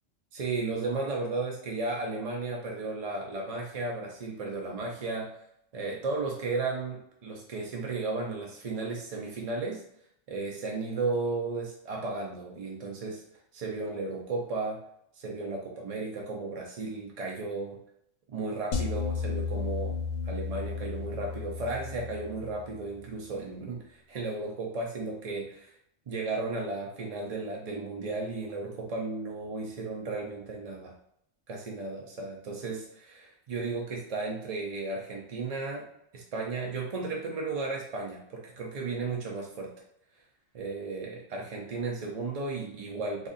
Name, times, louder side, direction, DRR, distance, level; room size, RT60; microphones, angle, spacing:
voice 1, 0.3-5.3 5.7-9.8 10.3-13.2 13.5-14.8 15.2-17.8 18.3-19.9 20.3-23.8 24.1-25.7 26.1-30.9 31.5-35.9 36.1-39.7 40.5-43.3, right 3 dB, 60° right, -1 dB, 0.4 m, -34 dB
sound 1, 18.7-23.0, left 5 dB, 90° left, 0.3 m, -34 dB
3.8 x 2.5 x 2.5 m, 0.73 s
omnidirectional pair, 1.3 m